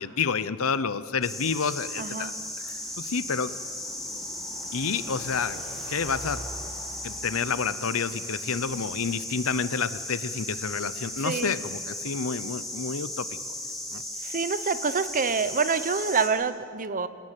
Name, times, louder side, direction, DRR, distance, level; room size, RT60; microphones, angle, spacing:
voice 1, 0.0-2.3 3.0-3.5 4.7-5.6 5.9-6.4 7.0-13.3 13.9-14.0, left 5 dB, 70° left, 15 dB, 0.7 m, -29 dB
sound 1, 1.2-16.3, left 1 dB, ahead, 4.5 m, -36 dB
voice 2, 2.0-2.3 11.2-11.5 14.2-17.1, right 5 dB, 40° right, 12 dB, 0.8 m, -27 dB
27.0 x 17.5 x 7.6 m, 2.4 s
head